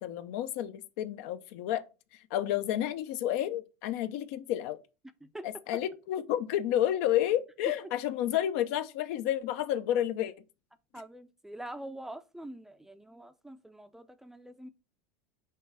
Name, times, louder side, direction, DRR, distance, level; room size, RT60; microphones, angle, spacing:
voice 1, 0.0-1.8 2.1-4.8 5.4-10.3, left 12 dB, 70° left, 0.7 m, -30 dB
voice 2, 10.9-14.7, right 1 dB, 5° right, 0.5 m, -45 dB
5.4 x 3.2 x 5.4 m
supercardioid pair, 125°, 8 cm